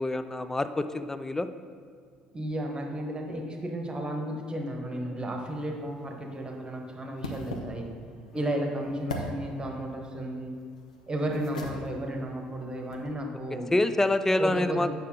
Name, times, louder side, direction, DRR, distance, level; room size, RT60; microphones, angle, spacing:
voice 1, 0.0-1.5 8.4-8.5 13.7-14.9, left 2 dB, 10° left, 11 dB, 0.4 m, -26 dB
voice 2, 2.3-7.9 8.3-10.6 11.1-13.7 14.4-14.9, right 1 dB, 25° right, 2 dB, 1.3 m, -33 dB
sound 1, 5.4-13.1, left 1 dB, 85° left, 0.7 m, -42 dB
8.4 x 5.8 x 3.8 m, 2.1 s
figure-of-eight pair, 55°, 4 cm